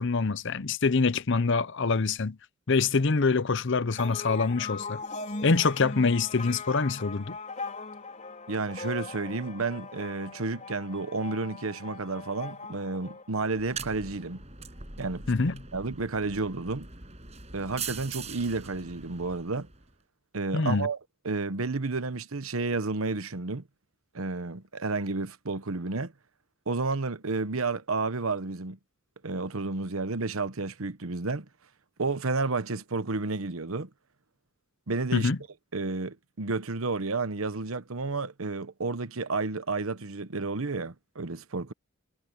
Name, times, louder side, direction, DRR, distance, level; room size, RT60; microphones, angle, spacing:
voice 1, 0.0-2.4 2.7-5.0 5.4-7.4 15.3-15.6 20.5-20.9 35.1-35.4, left 4 dB, 60° left, 0.8 m, -25 dB
sound 1, 4.0-13.8, left 3 dB, 35° left, 5.0 m, -40 dB
voice 2, 8.5-14.4 15.0-15.2 15.7-16.9 17.5-19.7 20.3-21.0 21.2-23.6 24.1-26.1 26.7-28.8 29.2-31.5 32.0-33.9 34.9-35.3 35.7-41.7, right 3 dB, 85° right, 1.1 m, -31 dB
sound 2, 13.5-19.9, right 5 dB, 30° right, 7.2 m, -42 dB
head